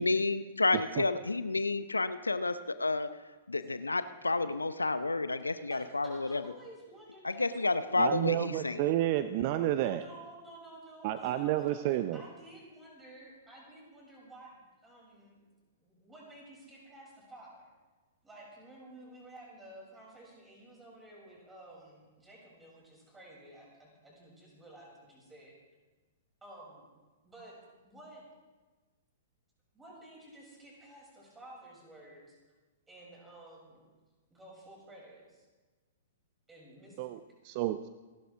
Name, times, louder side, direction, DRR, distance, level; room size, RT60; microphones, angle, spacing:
voice 1, 0.0-3.1 3.5-6.4 7.2-8.9, left 3 dB, 85° left, 12 dB, 0.7 m, -30 dB
voice 2, 5.7-8.2 9.8-11.8 12.1-15.5 15.8-17.7 18.2-25.6 26.4-26.9 27.2-27.6 27.8-28.2 29.7-32.4 32.9-33.8 34.3-35.5 36.5-37.1, right 1 dB, 10° right, -4 dB, 7.1 m, -52 dB
voice 3, 8.0-10.0 11.0-12.2 37.0-37.8, right 13 dB, 45° right, 12 dB, 0.6 m, -30 dB
28.0 x 12.0 x 3.7 m, 1.3 s
figure-of-eight pair, 110°, 0 cm